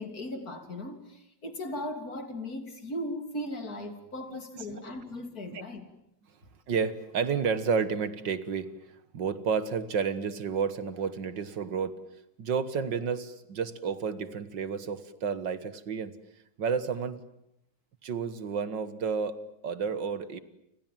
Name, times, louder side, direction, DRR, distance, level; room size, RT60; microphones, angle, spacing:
voice 1, 0.0-5.9, left 1 dB, 50° left, 8 dB, 3.6 m, -37 dB
voice 2, 6.7-8.7 9.1-12.0 12.4-16.2 16.6-17.2 18.0-19.4 19.6-20.4, right 6 dB, 70° right, 14 dB, 2.1 m, -31 dB
29.5 x 26.0 x 7.5 m, 0.78 s
omnidirectional pair, 2.1 m